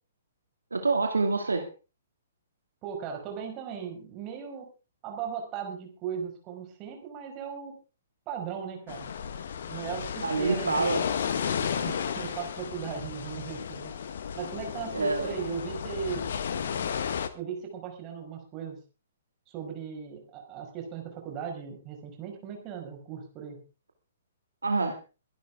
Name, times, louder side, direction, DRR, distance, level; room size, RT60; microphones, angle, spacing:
voice 1, 0.7-1.7 10.2-11.0 14.9-15.4 24.6-25.0, right 3 dB, 75° right, 5 dB, 2.4 m, -27 dB
voice 2, 2.8-4.7 5.0-7.7 8.3-9.1 9.7-11.0 11.6-14.0 14.4-16.3 17.3-18.8 19.5-23.6, right 7 dB, 25° right, 3 dB, 5.5 m, -37 dB
sound 1, 8.9-17.3, left 7 dB, 55° left, 1.6 m, -33 dB
23.0 x 11.5 x 3.7 m, 0.33 s
figure-of-eight pair, 120°, 0 cm